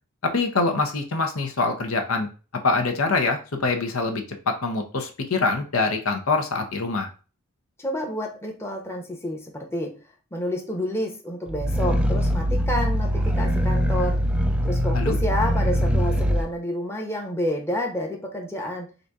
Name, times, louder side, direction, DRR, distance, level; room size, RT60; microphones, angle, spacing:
voice 1, 0.2-2.3 2.6-7.1 14.9-15.2, left 3 dB, 70° left, 5 dB, 0.8 m, -24 dB
voice 2, 7.8-9.9 10.3-14.2 14.6-18.9, left 1 dB, 10° left, 0 dB, 0.9 m, -29 dB
Growling, 11.5-16.4, equal, 5° right, 0.4 m, -22 dB
3.9 x 2.7 x 4.6 m, 0.35 s
head